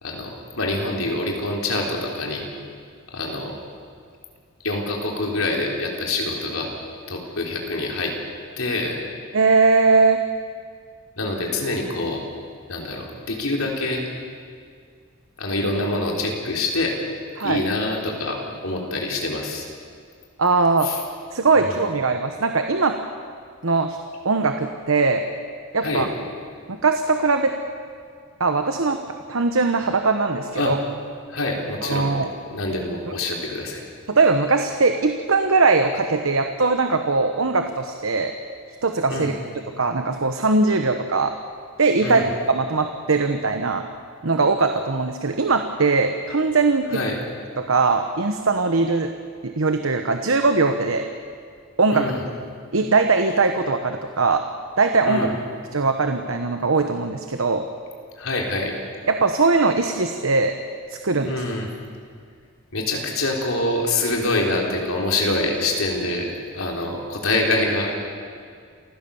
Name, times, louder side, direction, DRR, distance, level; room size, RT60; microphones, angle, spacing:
voice 1, 0.0-2.5 3.1-3.5 4.6-6.7 7.1-8.1 8.6-9.0 11.2-12.2 12.7-14.1 15.4-17.0 17.4-19.7 20.8-21.0 21.6-21.8 25.8-26.1 30.5-30.7 31.3-32.1 32.5-33.8 39.1-39.3 42.0-42.3 46.9-47.2 51.9-52.2 55.0-55.4 58.2-58.8 61.2-61.7 62.7-67.9, left 2 dB, 90° left, 0 dB, 3.9 m, -25 dB
voice 2, 9.3-10.2 17.4-17.6 20.4-20.9 21.3-23.0 23.6-24.0 24.2-25.2 25.7-26.1 26.7-27.5 28.4-30.8 31.8-32.3 34.1-38.3 38.8-39.3 39.8-41.3 41.8-43.9 44.2-47.0 47.6-49.1 49.4-51.1 51.8-52.1 52.7-54.4 54.8-55.3 55.7-57.6 59.1-60.5 60.9-61.4, right 3 dB, 80° right, 6 dB, 1.1 m, -20 dB
28.0 x 16.0 x 7.1 m, 2.2 s
head